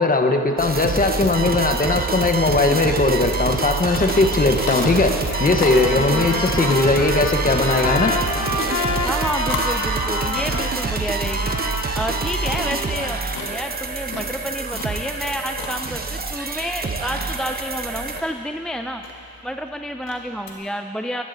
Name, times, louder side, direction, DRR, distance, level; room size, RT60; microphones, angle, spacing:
voice 1, 0.0-8.2, left 3 dB, 25° left, 5 dB, 1.1 m, -19 dB
sound 1, 0.6-18.2, right 4 dB, 25° right, 0.9 m, -26 dB
sound 2, 3.8-20.6, left 4 dB, 75° left, 1.7 m, -36 dB
Trumpet, 5.2-10.7 11.2-13.2, left 2 dB, 50° left, 2.3 m, -28 dB
voice 2, 6.0-6.4 9.0-11.6 11.9-19.0 19.4-21.2, equal, ahead, 5 dB, 0.4 m, -29 dB
22.5 x 11.0 x 2.7 m, 2.5 s
supercardioid pair, 65°, 35 cm